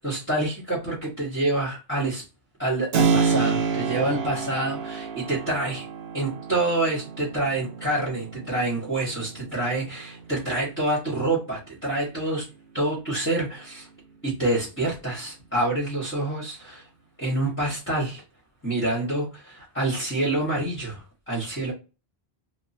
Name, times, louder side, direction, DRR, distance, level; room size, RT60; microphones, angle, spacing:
voice 1, 0.0-2.2 2.6-5.9 6.1-12.5 12.7-13.9 14.2-16.9 17.2-18.2 18.6-21.7, right 2 dB, 10° left, 1.1 m, -27 dB
Keyboard (musical), 2.9-11.5, right 5 dB, 75° right, 0.8 m, -29 dB
2.9 x 2.2 x 2.6 m
omnidirectional pair, 1.1 m